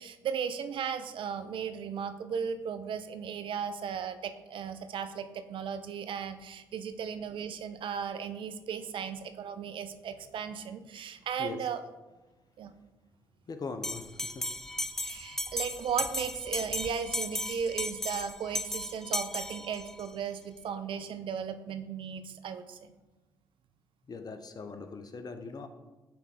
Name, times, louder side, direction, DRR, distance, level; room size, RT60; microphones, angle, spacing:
voice 1, 0.0-11.8 12.6-12.7 15.0-22.9, right 7 dB, 55° right, 10 dB, 0.6 m, -36 dB
voice 2, 13.5-14.9 24.1-25.7, left 4 dB, 40° left, 8 dB, 0.7 m, -41 dB
Bell, 13.8-20.1, left 1 dB, 5° left, 0.4 m, -35 dB
7.8 x 3.5 x 5.1 m, 1.1 s
hypercardioid pair, 45°, 10 cm